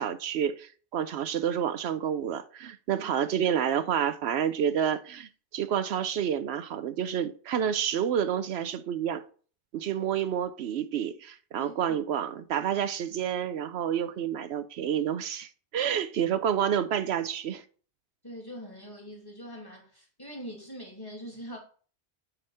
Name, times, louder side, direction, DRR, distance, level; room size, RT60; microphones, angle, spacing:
voice 1, 0.0-9.2 9.7-17.6, right 9 dB, 75° right, 0.9 m, -29 dB
voice 2, 11.6-12.0 15.8-15.9 18.2-21.6, equal, 20° left, 2.5 m, -43 dB
9.2 x 3.9 x 5.5 m
omnidirectional pair, 1.1 m